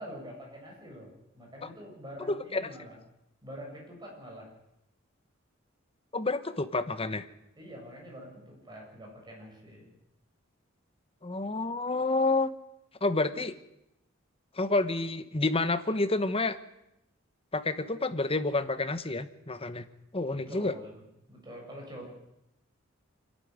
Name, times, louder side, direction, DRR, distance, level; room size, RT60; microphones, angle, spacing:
voice 1, 0.0-3.0 3.4-4.5 7.6-9.9 20.3-21.0 21.3-22.2, equal, 20° right, -1 dB, 7.5 m, -45 dB
voice 2, 2.3-2.6 6.1-7.3 11.2-12.5 13.0-13.6 14.5-16.6 17.5-19.8 20.1-20.7, left 2 dB, 30° left, 11 dB, 1.2 m, -29 dB
26.0 x 12.0 x 9.7 m, 0.84 s
head